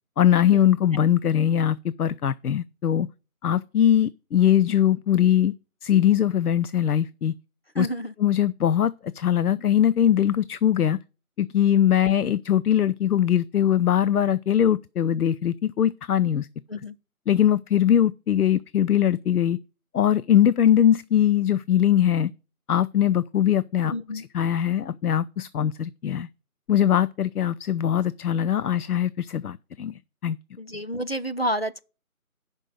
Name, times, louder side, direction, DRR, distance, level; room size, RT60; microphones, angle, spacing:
voice 1, 0.2-3.1 3.4-5.5 5.8-7.3 7.8-7.9 8.2-11.0 11.4-16.5 17.3-19.6 19.9-22.3 22.7-23.9 24.3-26.3 26.7-30.4, left 10 dB, 90° left, 0.6 m, -21 dB
voice 2, 7.8-8.1 16.7-16.9 23.9-24.2 30.6-31.8, equal, 45° left, 0.4 m, -29 dB
10.0 x 5.4 x 5.3 m
figure-of-eight pair, 175°, 44 cm